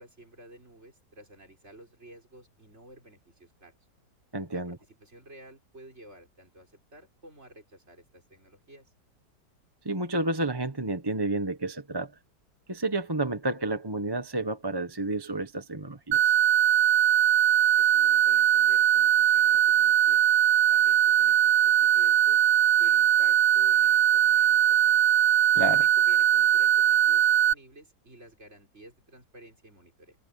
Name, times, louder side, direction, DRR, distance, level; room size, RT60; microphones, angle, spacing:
voice 1, 0.0-3.7 4.5-8.9 17.8-20.3 20.7-22.4 22.8-25.1 25.7-30.2, right 1 dB, 40° right, 6.8 m, -52 dB
voice 2, 4.3-4.8 9.8-12.1 12.7-16.3 25.5-25.8, right 2 dB, 15° right, 1.1 m, -30 dB
sound 1, 16.1-27.5, right 10 dB, 90° right, 1.4 m, -21 dB
omnidirectional pair, 1.8 m